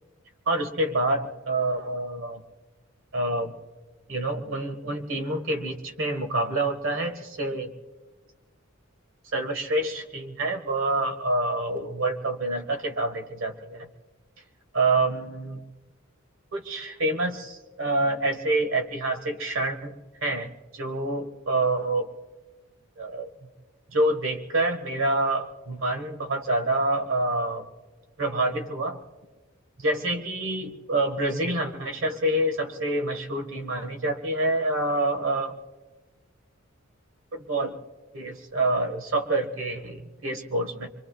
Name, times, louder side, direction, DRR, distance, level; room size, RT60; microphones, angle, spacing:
voice 1, 0.5-2.4 3.1-3.6 4.1-7.7 9.3-13.9 14.7-15.6 16.5-22.1 23.0-23.5 23.9-27.7 28.2-29.0 29.8-35.6 37.3-37.8 38.1-40.9, right 2 dB, 70° right, 5 dB, 1.5 m, -27 dB
25.5 x 23.5 x 2.4 m, 1.2 s
head